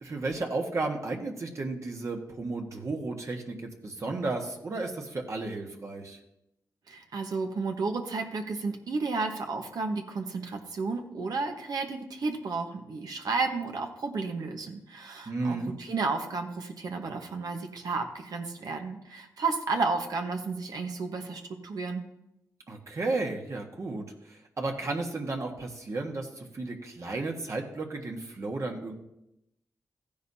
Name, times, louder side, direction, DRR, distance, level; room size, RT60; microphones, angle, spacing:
voice 1, 0.0-6.2 15.2-15.7 22.7-28.9, right 3 dB, 50° right, 1 dB, 1.5 m, -33 dB
voice 2, 6.9-22.0, right 4 dB, 70° right, 3 dB, 1.3 m, -32 dB
14.5 x 10.0 x 2.8 m, 0.85 s
cardioid pair, 75°, 7 cm